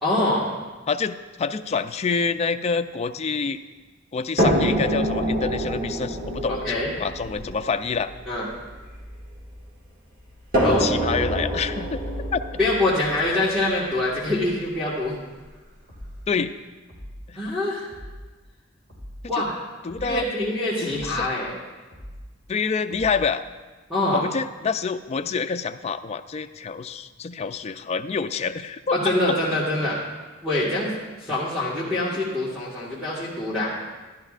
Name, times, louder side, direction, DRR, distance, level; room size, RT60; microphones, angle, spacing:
voice 1, 0.0-0.6 6.5-6.9 8.3-8.5 10.6-10.9 12.6-15.1 17.3-17.9 19.3-19.6 20.0-21.5 23.9-24.2 28.9-30.0 30.4-30.9 31.2-33.7, left 1 dB, ahead, -9 dB, 1.5 m, -24 dB
voice 2, 0.9-3.6 4.1-6.7 7.0-8.1 10.8-12.4 16.3-16.5 17.3-17.4 19.8-20.2 20.8-21.3 22.5-23.4 24.1-29.0 29.3-29.4, left 5 dB, 30° left, 9 dB, 0.3 m, -27 dB
sound 1, 4.4-9.6 10.5-14.5 15.5-15.6 16.0-16.1, right 1 dB, 45° right, 1.8 m, -26 dB
sound 2, 15.9-16.3 16.9-17.3 17.9-18.3 18.9-19.3 19.9-20.3 20.9-21.3 21.9-22.3 22.9-23.3, equal, 75° right, 3.8 m, -41 dB
13.5 x 11.5 x 2.4 m, 1.3 s
head